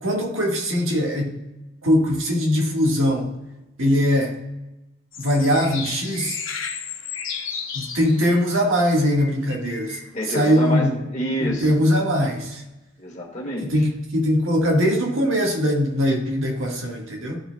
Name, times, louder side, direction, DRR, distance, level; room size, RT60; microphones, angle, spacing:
voice 1, 0.0-1.3 1.8-3.3 3.8-4.3 5.2-6.4 7.7-10.0 10.3-11.0 11.4-12.6 13.6-17.4, equal, 85° right, 0 dB, 1.6 m, -21 dB
sound 1, 5.1-8.5 8.8-10.7, left 6 dB, 75° left, 1.2 m, -34 dB
voice 2, 10.1-11.8 13.0-13.7, equal, 35° left, -2 dB, 1.8 m, -28 dB
13.5 x 4.5 x 2.2 m, 0.97 s
head